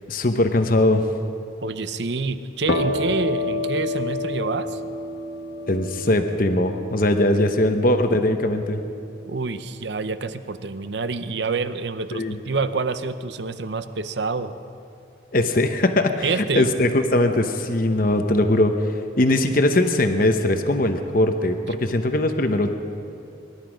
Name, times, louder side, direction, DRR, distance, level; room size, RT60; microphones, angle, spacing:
voice 1, 0.1-1.0 5.7-8.8 12.1-12.4 15.3-18.9 19.2-22.7, left 1 dB, 45° left, 7 dB, 0.9 m, -20 dB
voice 2, 1.6-4.8 9.3-14.5 16.2-16.7, right 4 dB, 65° right, 11 dB, 0.7 m, -27 dB
sound 1, 2.7-10.1, left 2 dB, 80° left, 1.2 m, -30 dB
23.5 x 12.0 x 5.1 m, 2.6 s
head